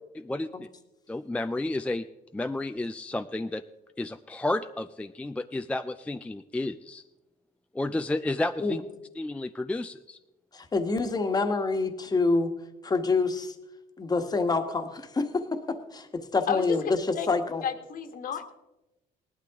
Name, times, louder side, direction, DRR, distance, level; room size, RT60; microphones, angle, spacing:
voice 1, 0.2-0.7 1.1-2.1 2.3-3.6 4.0-7.0 7.7-8.8 9.2-10.2, left 2 dB, 10° left, 8 dB, 0.4 m, -31 dB
voice 2, 10.5-12.5 12.8-13.5 14.0-17.0 17.3-17.6, left 3 dB, 25° left, 6 dB, 1.3 m, -27 dB
voice 3, 17.6-18.5, left 8 dB, 55° left, 7 dB, 1.5 m, -31 dB
18.0 x 12.0 x 3.6 m, 0.97 s
cardioid pair, 110°, 17 cm